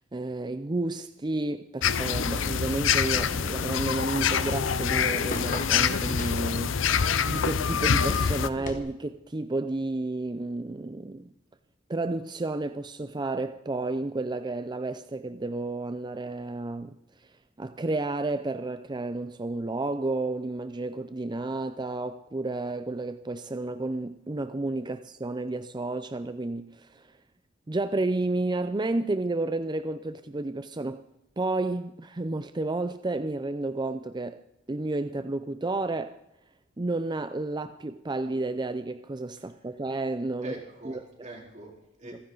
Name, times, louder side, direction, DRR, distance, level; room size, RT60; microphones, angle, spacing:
voice 1, 0.1-7.0 7.3-11.3 11.9-16.9 17.6-27.1 27.7-31.0 31.4-34.4 34.7-36.2 36.8-40.5 40.9-41.0, right 2 dB, 25° right, 0.5 m, -31 dB
sound 1, 1.8-8.5, left 7 dB, 80° left, 0.7 m, -26 dB
sound 2, 3.1-8.8, left 2 dB, 45° left, 1.6 m, -40 dB
voice 2, 40.4-42.2, right 1 dB, 40° right, 4.1 m, -43 dB
27.5 x 10.5 x 4.0 m
head